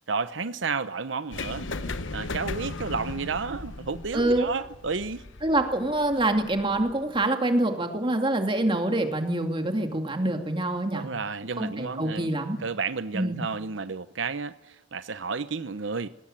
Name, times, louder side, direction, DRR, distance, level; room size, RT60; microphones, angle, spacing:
voice 1, 0.1-1.7 2.1-5.2 10.9-12.3 12.6-16.1, right 4 dB, 80° right, 0.9 m, -31 dB
sound 1, 1.3-7.2, left 3 dB, 90° left, 1.1 m, -37 dB
voice 2, 4.1-4.5 5.4-11.1 11.6-12.6 13.1-13.4, right 1 dB, 25° right, 2.5 m, -25 dB
20.0 x 17.5 x 9.0 m
head